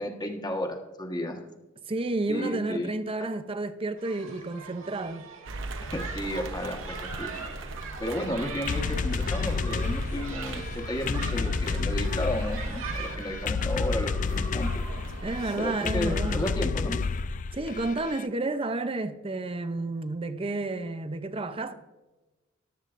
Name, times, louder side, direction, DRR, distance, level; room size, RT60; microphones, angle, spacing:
voice 1, 0.0-1.4 2.3-2.9 3.2-3.3 5.9-7.5 8.0-14.8 15.6-17.0, left 1 dB, 20° left, 1.4 m, -33 dB
voice 2, 1.9-5.3 15.2-16.5 17.5-21.7, right 2 dB, 25° right, 0.6 m, -31 dB
sound 1, 4.0-13.2, right 5 dB, 85° right, 2.0 m, -42 dB
sound 2, 5.5-16.6, right 2 dB, 65° right, 0.9 m, -38 dB
sound 3, 8.7-18.2, left 4 dB, 40° left, 0.3 m, -30 dB
14.0 x 12.0 x 2.6 m
head